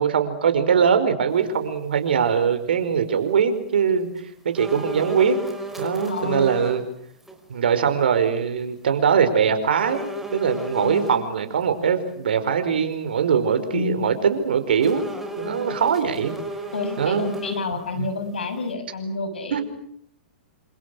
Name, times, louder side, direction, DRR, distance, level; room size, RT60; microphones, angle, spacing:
voice 1, 0.0-4.1 4.5-5.4 5.8-6.8 7.5-15.0 15.4-16.3 17.0-17.3 18.0-18.1 19.5-19.6, right 7 dB, 75° right, 9 dB, 5.1 m, -21 dB
sound 1, 4.5-6.8 7.2-7.4 9.8-11.2 14.8-17.9 18.2-18.3, equal, 5° right, 5.3 m, -33 dB
voice 2, 6.0-6.5 10.8-11.2 13.7-14.1 16.7-19.6, left 3 dB, 85° left, 9 dB, 6.6 m, -29 dB
28.0 x 26.5 x 6.5 m, 0.66 s
hypercardioid pair, 115°, 5 cm